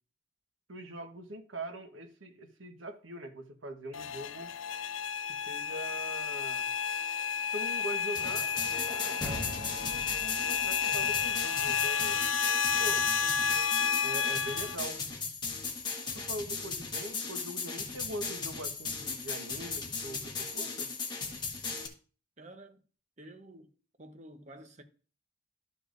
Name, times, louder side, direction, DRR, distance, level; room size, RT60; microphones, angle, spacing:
voice 1, 0.7-4.5 5.3-6.7 7.5-8.5 9.1-12.2 12.8-13.1 14.0-15.0 16.1-20.9, right 1 dB, 85° right, 1.2 m, -42 dB
sound 1, 3.9-14.8, left 7 dB, 80° left, 0.4 m, -31 dB
sound 2, 8.1-21.9, left 4 dB, 25° left, 1.4 m, -37 dB
sound 3, 8.2-12.1, left 1 dB, 5° left, 1.5 m, -44 dB
voice 2, 22.4-22.8 23.2-24.8, right 1 dB, 35° right, 0.9 m, -51 dB
12.5 x 6.8 x 2.6 m
head